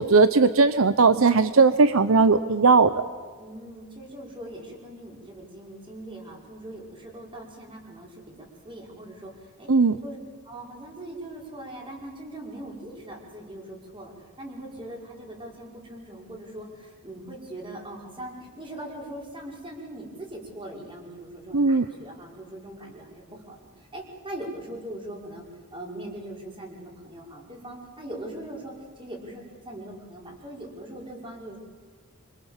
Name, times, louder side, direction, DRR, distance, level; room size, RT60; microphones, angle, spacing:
voice 1, 0.0-2.9 9.7-10.0 21.5-21.8, right 4 dB, 65° right, 12 dB, 0.8 m, -18 dB
voice 2, 3.4-9.7 10.0-10.2 10.4-25.4 25.7-31.6, right 1 dB, 25° right, -1 dB, 5.5 m, -41 dB
26.0 x 25.5 x 7.4 m, 1.5 s
head